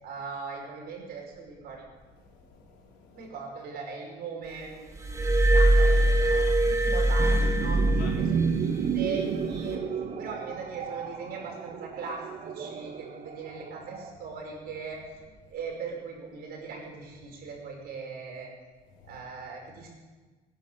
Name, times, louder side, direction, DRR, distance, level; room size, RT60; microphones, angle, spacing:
voice 1, 0.0-1.9 3.1-7.8 8.2-9.8 10.2-15.0 15.5-18.5 19.0-19.9, right 5 dB, 65° right, 0 dB, 5.6 m, -39 dB
voice 2, 2.0-3.3 6.6-6.8 8.0-8.2 10.0-10.2 18.9-19.2, left 5 dB, 90° left, 0 dB, 3.7 m, -51 dB
Glass, 5.0-8.6 9.5-9.7, right 1 dB, 20° right, 2.3 m, -22 dB
sound 1, 7.2-14.1, right 6 dB, 45° right, 1.6 m, -31 dB
18.5 x 10.5 x 6.7 m, 1.3 s
cardioid pair, 110°, 17 cm